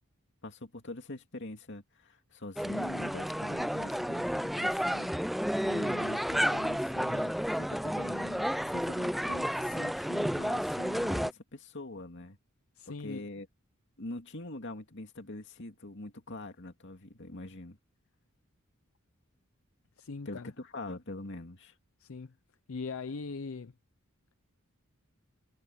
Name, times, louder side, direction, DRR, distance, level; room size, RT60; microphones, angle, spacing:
voice 1, 0.4-5.1 5.6-12.4 13.0-13.5 14.0-17.8 20.3-21.7, left 2 dB, 55° left, 2.5 m, -43 dB
sound 1, 2.6-11.3, equal, ahead, 0.4 m, -31 dB
voice 2, 12.8-13.3 20.0-20.5 22.0-22.3 22.7-23.7, left 4 dB, 70° left, 0.6 m, -40 dB
head